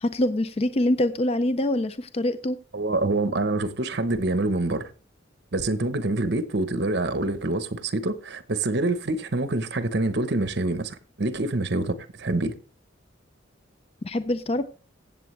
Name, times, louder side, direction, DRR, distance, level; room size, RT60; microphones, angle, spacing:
voice 1, 0.0-2.6 14.0-14.6, left 1 dB, 30° left, 0.4 m, -24 dB
voice 2, 2.7-4.9 5.5-12.5, right 2 dB, 60° right, 1.0 m, -26 dB
15.5 x 7.6 x 3.2 m
head